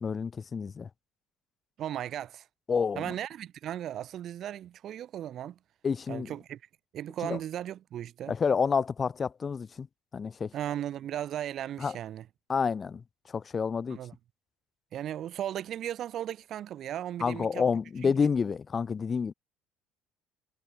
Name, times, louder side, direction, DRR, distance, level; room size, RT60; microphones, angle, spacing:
voice 1, 0.0-0.9 2.7-3.1 5.8-6.3 7.2-7.4 8.3-9.9 10.1-10.5 11.8-12.0 12.5-13.0 13.3-14.0 17.2-19.3, left 5 dB, 25° left, 1.4 m, -29 dB
voice 2, 1.8-2.5 3.0-5.6 6.1-6.6 6.9-8.3 10.5-12.3 13.9-14.1 14.9-17.6 18.0-18.1, right 11 dB, 50° right, 2.0 m, -36 dB
cardioid pair, 125°, 0 cm